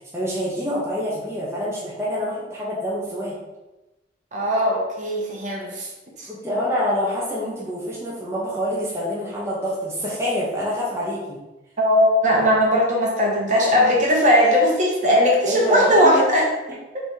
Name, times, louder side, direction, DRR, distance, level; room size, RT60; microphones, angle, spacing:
voice 1, 0.0-3.3 6.3-11.4 15.4-16.2, equal, 15° right, -6 dB, 0.8 m, -26 dB
voice 2, 4.3-5.9 6.2-6.3 11.8-16.4, equal, 45° right, -2 dB, 1.0 m, -18 dB
3.4 x 3.3 x 4.4 m, 1.0 s
head